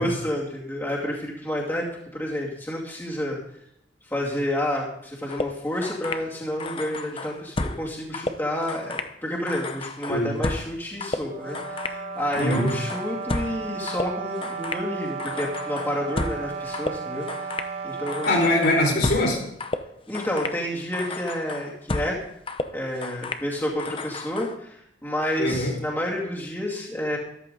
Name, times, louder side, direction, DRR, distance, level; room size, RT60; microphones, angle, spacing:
voice 1, 0.0-3.4 4.0-18.4 20.1-22.2 22.7-27.2, left 1 dB, 10° left, -4 dB, 2.5 m, -30 dB
sound 1, 5.3-6.3 6.6-7.9 8.1-9.1 9.5-12.0 12.3-13.6 13.9-14.9 15.2-16.5 16.7-17.7 18.1-19.3 19.6-20.6 20.9-22.2 22.5-23.5 23.8-24.6, left 2 dB, 30° left, 0.8 m, -32 dB
sound 2, 11.2-18.8, right 5 dB, 35° right, 1.5 m, -34 dB
voice 2, 12.3-12.7 18.3-19.4 25.4-25.7, left 1 dB, 60° left, -1 dB, 4.8 m, -22 dB
14.0 x 13.5 x 3.9 m, 0.74 s
head